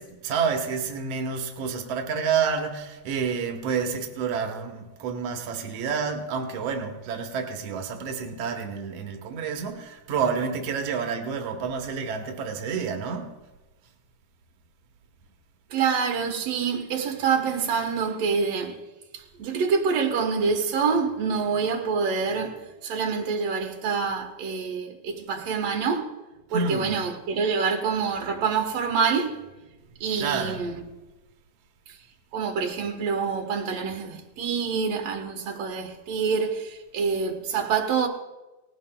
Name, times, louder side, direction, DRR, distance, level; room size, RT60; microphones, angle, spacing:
voice 1, 0.0-13.4 26.5-27.0 30.2-30.6, right 6 dB, 90° right, 1.4 m, -29 dB
voice 2, 15.7-18.8 19.1-26.1 26.5-29.4 30.0-30.8 32.3-38.1, right 5 dB, 60° right, 1.7 m, -26 dB
19.0 x 17.0 x 2.2 m
omnidirectional pair, 4.2 m